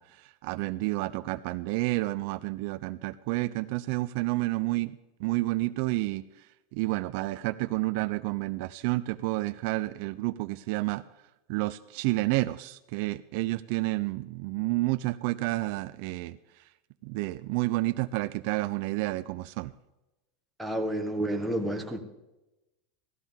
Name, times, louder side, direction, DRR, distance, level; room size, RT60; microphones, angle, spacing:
voice 1, 0.0-4.9 5.2-6.5 6.7-11.0 11.5-16.7 17.0-19.7, right 20 dB, 50° right, 12 dB, 0.3 m, -30 dB
voice 2, 20.6-22.0, right 1 dB, ahead, 1 dB, 1.1 m, -30 dB
16.5 x 13.5 x 3.6 m, 1.0 s
supercardioid pair, 170°, 0 cm